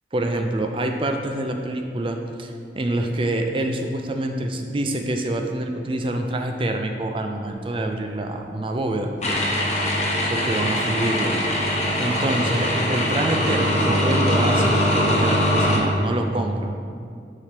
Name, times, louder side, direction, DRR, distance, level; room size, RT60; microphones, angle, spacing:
voice 1, 0.1-9.1 10.3-11.4 12.0-16.8, right 1 dB, 30° right, 4 dB, 0.4 m, -26 dB
sound 1, 9.2-15.8, equal, 40° left, 0.9 m, -22 dB
5.0 x 4.2 x 5.9 m, 2.2 s
head